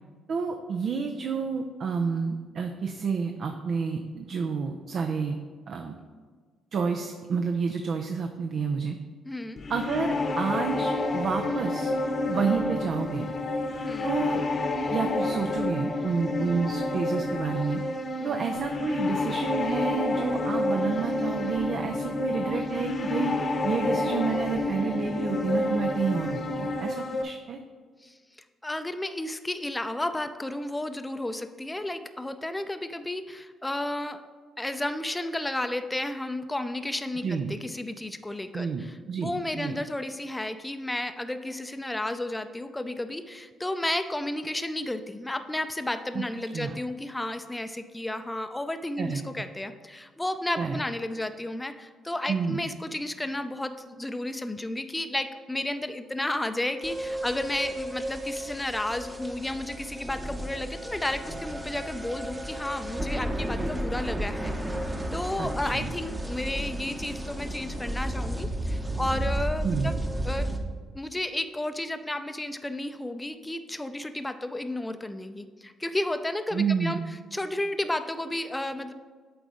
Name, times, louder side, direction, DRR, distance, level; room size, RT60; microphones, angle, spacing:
voice 1, 0.3-5.4 5.7-6.0 6.7-9.0 9.7-11.9 12.3-13.3 14.0-14.4 14.9-17.8 18.2-23.3 23.6-27.6 37.2-37.5 38.5-39.8 46.1-46.2 46.5-46.8 49.0-49.2 50.6-50.8 52.3-52.6 65.4-65.9 69.6-69.9 76.5-77.0, right 5 dB, 55° right, 5 dB, 0.5 m, -29 dB
voice 2, 9.2-9.6 13.8-14.1 18.2-18.4 28.0-28.2 28.6-34.2 34.6-39.0 39.2-64.5 64.8-69.9 70.2-70.5 70.9-78.9, left 1 dB, 10° left, 9 dB, 0.5 m, -32 dB
sound 1, 9.6-27.2, left 2 dB, 45° left, 0.9 m, -29 dB
sound 2, 56.8-70.6, right 1 dB, 10° right, 0.9 m, -33 dB
7.8 x 4.0 x 4.9 m, 1.5 s
cardioid pair, 90°, 0 cm